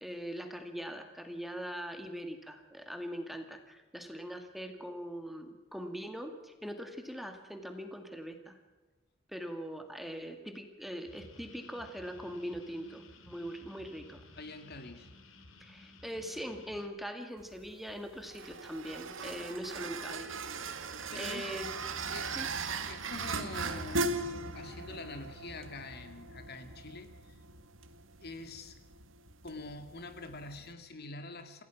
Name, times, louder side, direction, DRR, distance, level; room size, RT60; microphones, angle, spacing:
voice 1, 0.0-8.6 9.3-14.2 15.6-20.6 21.1-21.7 22.4-22.5, equal, ahead, 5 dB, 2.0 m, -42 dB
sound 1, 11.0-16.9, left 2 dB, 85° left, 2.8 m, -55 dB
voice 2, 14.4-15.1 21.1-21.5 22.1-22.4 22.9-24.3 24.5-27.4 28.2-28.8 29.4-31.6, left 2 dB, 55° left, 8 dB, 2.1 m, -45 dB
sound 2, 17.4-30.7, right 3 dB, 80° right, 1.8 m, -39 dB
27.5 x 16.0 x 6.0 m, 1.2 s
head